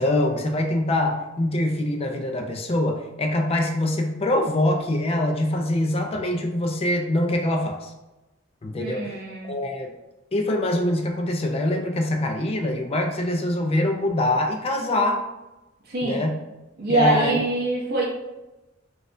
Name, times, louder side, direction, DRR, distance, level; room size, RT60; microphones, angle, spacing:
voice 1, 0.0-7.9 8.6-9.9 10.3-15.2 16.0-16.4 16.9-17.4, left 1 dB, 30° left, 3 dB, 0.4 m, -24 dB
voice 2, 8.8-9.6 15.9-16.2 16.8-18.0, right 3 dB, 50° right, -4 dB, 0.6 m, -24 dB
4.1 x 2.4 x 2.5 m, 1.0 s
head